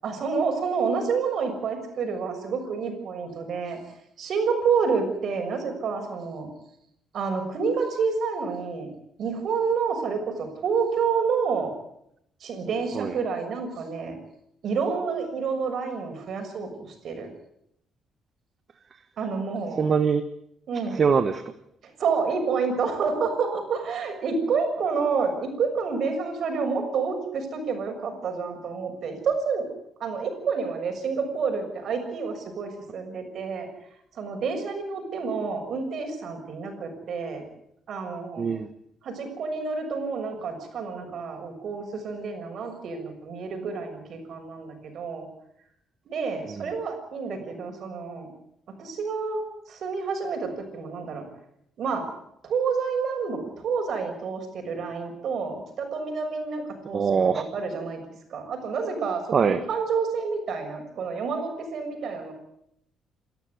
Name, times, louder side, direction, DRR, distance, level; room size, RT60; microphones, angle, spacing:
voice 1, 0.0-3.8 4.2-6.5 7.1-8.9 9.2-11.7 12.4-14.1 14.6-17.3 19.2-19.9 20.7-21.0 22.0-29.6 30.0-33.7 34.1-37.4 37.9-38.5 39.0-45.3 46.1-48.3 48.8-51.3 51.8-52.0 52.4-58.0 58.3-62.3, right 5 dB, 65° right, 5 dB, 6.6 m, -29 dB
voice 2, 19.8-20.2 20.9-21.4 38.4-38.7 46.6-46.7 56.9-57.4 59.3-59.6, right 6 dB, 45° right, 10 dB, 1.4 m, -22 dB
28.5 x 13.5 x 9.6 m, 0.77 s
cardioid pair, 90°, 0 cm